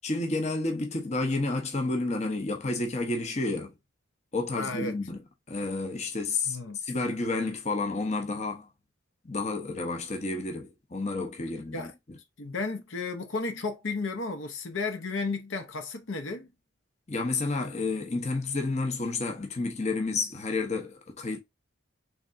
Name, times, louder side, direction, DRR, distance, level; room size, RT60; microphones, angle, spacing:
voice 1, 0.0-3.7 4.3-5.2 5.5-6.6 6.8-8.7 9.2-12.2 17.1-21.4, left 3 dB, 30° left, 0.7 m, -30 dB
voice 2, 4.5-5.0 6.5-6.8 11.7-11.9 12.4-16.5, left 3 dB, 65° left, 0.7 m, -33 dB
3.6 x 3.3 x 2.5 m
head